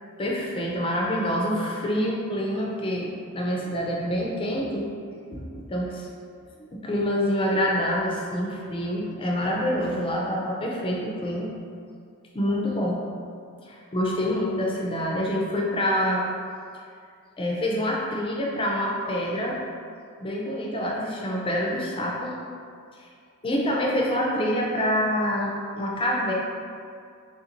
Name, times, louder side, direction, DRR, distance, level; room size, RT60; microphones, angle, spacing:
voice 1, 0.2-4.9 5.3-6.1 6.7-11.5 12.3-13.0 13.7-16.3 17.4-19.6 20.2-22.3 23.4-26.3, equal, 25° left, -2 dB, 0.4 m, -26 dB
3.5 x 2.5 x 2.8 m, 2.3 s
head